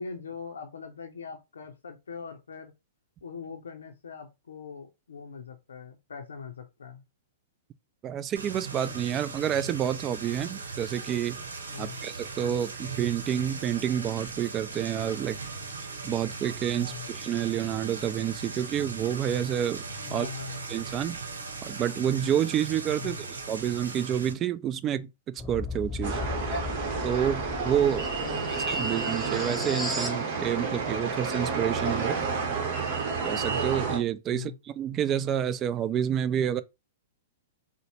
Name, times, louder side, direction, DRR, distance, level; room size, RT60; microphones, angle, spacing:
voice 1, 0.0-2.7 3.2-7.0 11.7-12.0 16.7-17.1 20.0-20.7 23.0-23.2 28.2-28.9 34.3-34.6, left 5 dB, 75° left, 0.5 m, -41 dB
voice 2, 8.0-11.4 11.8-15.4 16.0-19.8 20.1-20.3 20.7-21.2 21.6-26.2 27.0-28.1 28.7-32.2 33.2-36.6, right 10 dB, 30° right, 0.3 m, -29 dB
sound 1, 8.3-24.3, right 4 dB, 80° right, 0.8 m, -39 dB
sound 2, 25.4-30.2, left 3 dB, 10° left, 0.7 m, -36 dB
sound 3, 26.0-34.0, right 4 dB, 45° right, 1.0 m, -30 dB
3.9 x 2.1 x 3.0 m
figure-of-eight pair, 110°, 0 cm